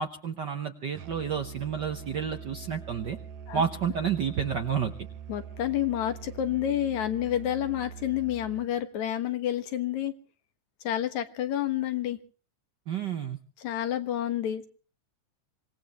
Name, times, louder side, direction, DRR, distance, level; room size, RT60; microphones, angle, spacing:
voice 1, 0.0-3.2 3.5-4.9 12.9-13.4, right 7 dB, 60° right, 7 dB, 1.2 m, -30 dB
Musical instrument, 0.9-8.7, right 7 dB, 75° right, 2.2 m, -43 dB
voice 2, 5.3-10.1 10.8-12.2 13.6-14.7, left 11 dB, 80° left, 9 dB, 2.8 m, -29 dB
25.5 x 18.5 x 3.1 m, 0.39 s
omnidirectional pair, 3.3 m